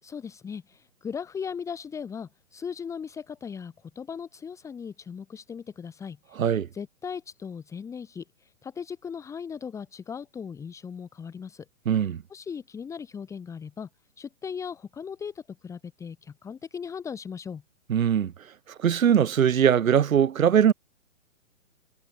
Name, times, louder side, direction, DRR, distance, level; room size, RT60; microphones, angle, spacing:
voice 1, 0.0-11.7 12.3-13.9 14.2-17.6, left 6 dB, 5° left, 2.5 m, -38 dB
voice 2, 11.9-12.2 17.9-18.3 18.8-20.7, right 8 dB, 80° right, 1.4 m, -21 dB
hypercardioid pair, 160°, 41 cm